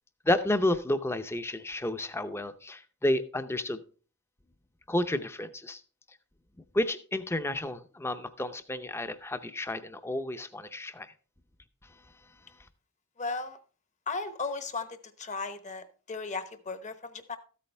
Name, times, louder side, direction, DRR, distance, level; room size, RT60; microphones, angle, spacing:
voice 1, 0.3-3.8 4.9-5.8 6.7-11.1, left 1 dB, 10° left, 11 dB, 0.6 m, -31 dB
voice 2, 13.2-13.6 14.1-17.4, left 4 dB, 35° left, 10 dB, 1.0 m, -36 dB
13.5 x 8.5 x 3.4 m, 0.39 s
head